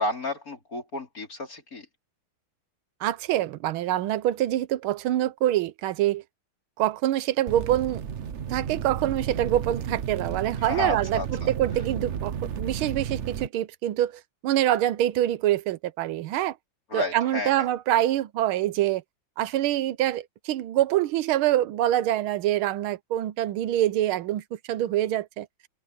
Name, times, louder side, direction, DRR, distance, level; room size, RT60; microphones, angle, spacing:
voice 1, 0.0-1.9 10.6-11.5 16.9-17.7, left 2 dB, 40° left, 5.1 m, -31 dB
voice 2, 3.0-6.2 6.8-8.0 8.5-11.2 11.6-14.1 14.4-16.5 16.9-19.0 19.4-25.5, right 13 dB, 90° right, 1.6 m, -25 dB
sound 1, 7.5-13.5, right 8 dB, 50° right, 0.9 m, -33 dB
omnidirectional pair, 2.2 m